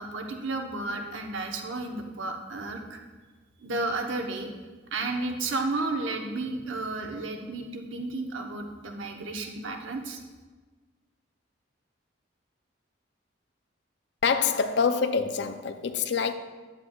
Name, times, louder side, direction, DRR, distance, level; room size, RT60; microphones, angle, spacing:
voice 1, 0.0-3.0 3.6-4.5 4.9-10.2, right 2 dB, 90° right, 0.9 m, -32 dB
voice 2, 14.2-16.3, left 5 dB, 60° left, 0.4 m, -25 dB
9.4 x 7.5 x 2.3 m
head